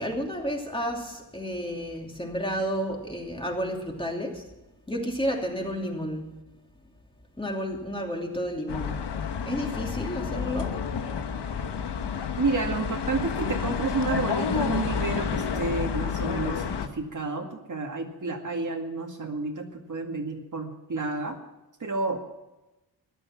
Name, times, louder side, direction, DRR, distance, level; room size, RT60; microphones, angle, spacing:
voice 1, 0.0-4.6 4.9-6.4 7.4-9.1 9.4-10.9, equal, 15° left, 2.8 m, -31 dB
sound 1, 8.7-16.9, left 6 dB, 85° left, 1.3 m, -30 dB
voice 2, 12.4-21.4 21.8-22.2, right 3 dB, 50° right, 2.2 m, -30 dB
14.5 x 11.0 x 7.5 m
wide cardioid pair, 95°, 40 cm